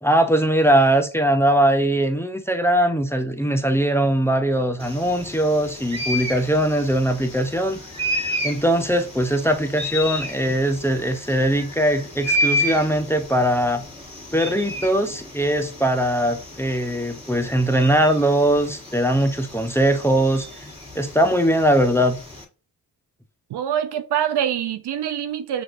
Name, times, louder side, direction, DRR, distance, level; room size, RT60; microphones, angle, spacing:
voice 1, 0.0-7.8 8.4-13.8 14.3-20.5 20.9-22.2, right 1 dB, 5° left, 0.6 m, -20 dB
sound 1, 4.8-22.4, equal, 10° right, 1.8 m, -31 dB
voice 2, 23.5-25.6, right 10 dB, 60° right, 0.6 m, -25 dB
5.8 x 2.6 x 2.5 m
hypercardioid pair, 40°, 47 cm